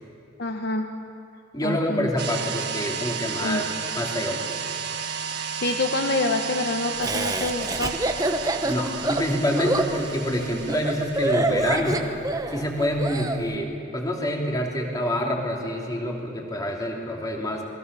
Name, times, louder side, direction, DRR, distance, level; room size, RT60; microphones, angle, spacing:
voice 1, 0.4-0.9 1.6-2.1 3.4-3.6 5.6-7.9, left 2 dB, 55° left, 5 dB, 1.1 m, -26 dB
voice 2, 1.5-3.6 4.0-4.5 8.6-12.1 12.5-17.7, equal, 20° left, 0 dB, 3.1 m, -27 dB
sound 1, 2.2-11.5, right 7 dB, 55° right, 1.7 m, -33 dB
Laughter, 7.0-13.4, right 2 dB, 20° right, 1.1 m, -26 dB
27.5 x 21.0 x 6.9 m, 2.6 s
head